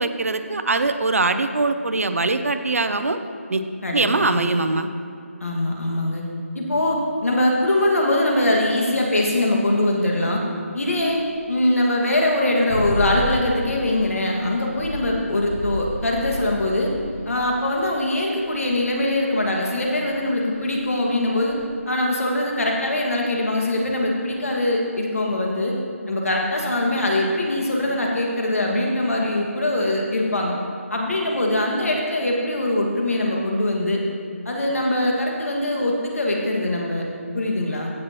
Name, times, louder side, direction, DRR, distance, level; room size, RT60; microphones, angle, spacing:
voice 1, 0.0-3.2 3.5-3.6 3.9-4.9, right 3 dB, 70° right, 9 dB, 0.7 m, -22 dB
voice 2, 3.8-4.5 5.4-6.2 6.5-10.4 10.7-11.2 11.5-16.9 17.3-21.6 21.9-25.8 26.1-30.5 30.9-34.0 34.5-37.0 37.3-37.9, left 1 dB, 70° left, -1 dB, 2.2 m, -22 dB
sound 1, 10.8-21.6, left 1 dB, 85° left, 2.4 m, -32 dB
15.5 x 7.6 x 3.2 m, 2.4 s
figure-of-eight pair, 175°, 8 cm